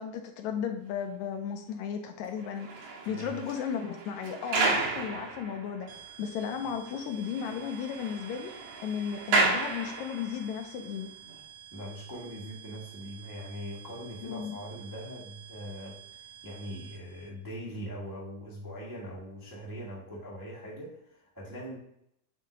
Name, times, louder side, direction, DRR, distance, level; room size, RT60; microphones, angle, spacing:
voice 1, 0.0-5.9 6.2-8.5 8.8-11.1 14.2-14.6, left 7 dB, 80° left, 5 dB, 1.9 m, -35 dB
sound 1, 2.4-6.1 6.4-6.5 6.9-7.0 7.2-10.5 11.2-11.4, right 3 dB, 90° right, 2.8 m, -32 dB
sound 2, 5.9-17.3, right 10 dB, 60° right, 2.7 m, -50 dB
voice 2, 11.7-16.0 16.2-21.8, equal, 10° right, -5 dB, 0.9 m, -41 dB
7.6 x 2.7 x 5.0 m, 0.73 s
omnidirectional pair, 3.5 m